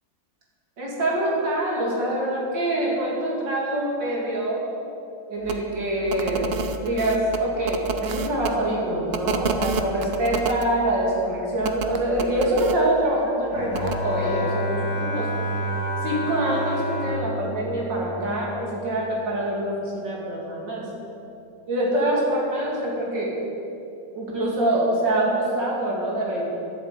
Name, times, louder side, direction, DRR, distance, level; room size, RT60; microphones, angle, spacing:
voice 1, 0.8-4.7 5.3-15.3 16.0-20.9 21.7-23.3 24.1-26.5, right 1 dB, 85° right, -3 dB, 3.3 m, -25 dB
sound 1, 5.4-5.6 6.1-8.5 9.1-10.6 11.6-12.7 13.7-13.9, right 4 dB, 55° right, 0.6 m, -28 dB
Bowed string instrument, 13.5-18.8, equal, 60° left, 1.7 m, -29 dB
11.0 x 7.8 x 8.9 m, 2.7 s
omnidirectional pair, 1.9 m